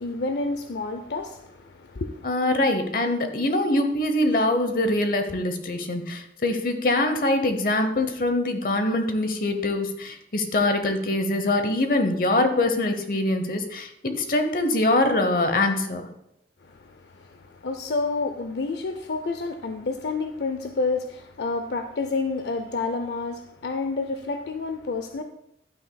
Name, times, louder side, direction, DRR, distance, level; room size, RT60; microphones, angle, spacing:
voice 1, 0.0-2.3 16.6-25.2, left 3 dB, 75° left, 0.5 m, -29 dB
voice 2, 2.2-16.1, left 2 dB, 50° left, 0.9 m, -23 dB
11.0 x 9.0 x 2.3 m
head